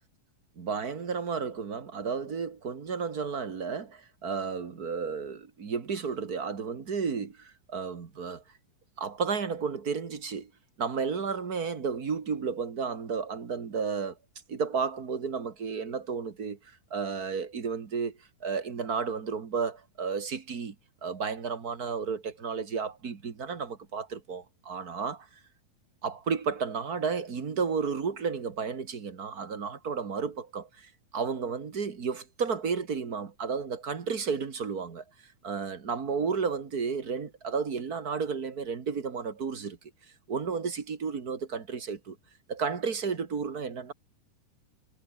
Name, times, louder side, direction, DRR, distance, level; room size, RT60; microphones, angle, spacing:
voice 1, 0.6-8.4 9.0-10.5 10.8-14.2 14.5-16.6 16.9-20.7 21.0-25.3 26.0-35.0 35.4-39.8 40.3-42.2 42.5-43.9, right 5 dB, 35° right, 1.7 m, -32 dB
omnidirectional pair, 3.9 m